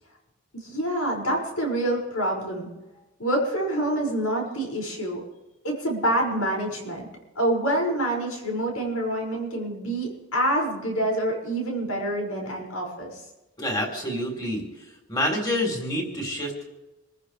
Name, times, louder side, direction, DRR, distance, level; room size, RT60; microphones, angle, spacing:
voice 1, 0.6-2.7 3.2-5.2 5.6-7.1 7.3-13.2, right 1 dB, 80° left, -1 dB, 6.1 m, -26 dB
voice 2, 13.6-14.6 15.1-16.6, left 1 dB, 20° left, 1 dB, 3.9 m, -27 dB
27.5 x 14.5 x 3.4 m, 1.0 s
head